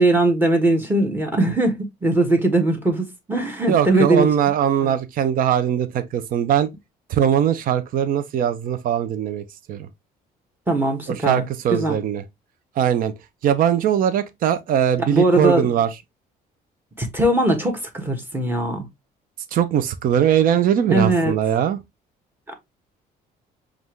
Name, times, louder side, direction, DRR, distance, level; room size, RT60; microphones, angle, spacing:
voice 1, 0.0-4.3 4.8-4.9 10.7-11.4 11.7-12.0 15.0-15.6 17.0-18.8 20.9-21.3 22.5-22.6, right 2 dB, 10° right, 1.3 m, -20 dB
voice 2, 3.7-6.7 7.1-9.9 11.1-12.2 12.8-13.1 13.4-15.9 19.5-21.8, right 9 dB, 55° right, 0.6 m, -20 dB
5.3 x 2.5 x 3.1 m
cardioid pair, 110°, 17 cm